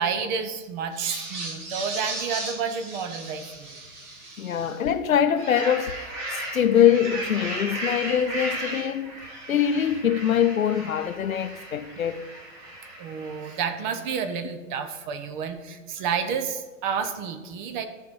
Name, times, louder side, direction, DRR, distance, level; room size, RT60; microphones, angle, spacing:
voice 1, 0.0-3.8 13.0-17.9, right 6 dB, 35° right, 1.0 m, -30 dB
sound 1, 0.9-4.8 5.2-13.9, right 1 dB, 10° right, 0.3 m, -36 dB
voice 2, 4.4-5.9 6.3-9.2 9.5-12.2, left 9 dB, 75° left, 0.8 m, -23 dB
13.0 x 4.6 x 5.5 m
figure-of-eight pair, 115°, 41 cm